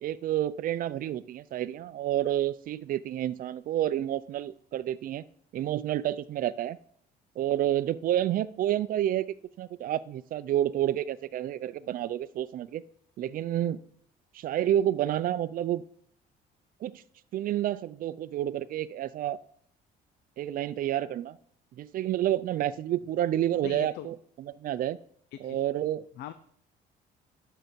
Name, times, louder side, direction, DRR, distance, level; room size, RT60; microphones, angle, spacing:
voice 1, 0.0-5.2 5.5-6.8 7.4-12.8 13.2-13.8 14.3-15.8 16.8-17.0 17.3-19.4 20.4-21.4 21.8-25.0 25.4-26.1, right 12 dB, 55° right, 16 dB, 0.5 m, -29 dB
voice 2, 23.6-24.1 25.4-25.6 26.2-26.3, left 13 dB, 80° left, 11 dB, 0.6 m, -40 dB
11.5 x 6.9 x 4.6 m, 0.64 s
cardioid pair, 110°, 17 cm